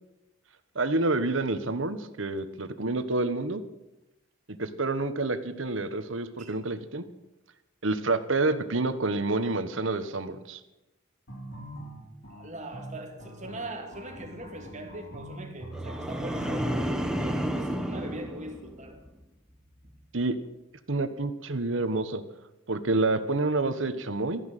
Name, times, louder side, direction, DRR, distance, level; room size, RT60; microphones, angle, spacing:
voice 1, 0.7-3.6 4.6-7.0 7.8-10.6 20.1-20.4 20.9-22.2 22.7-24.4, right 2 dB, 70° right, 1.3 m, -28 dB
sound 1, 11.3-17.0, right 1 dB, 70° left, 5.3 m, -40 dB
voice 2, 12.3-19.0 19.8-19.9, right 1 dB, 40° right, 2.7 m, -41 dB
sound 2, 15.7-19.1 19.5-19.9, equal, 5° right, 1.2 m, -32 dB
14.0 x 10.5 x 9.2 m
head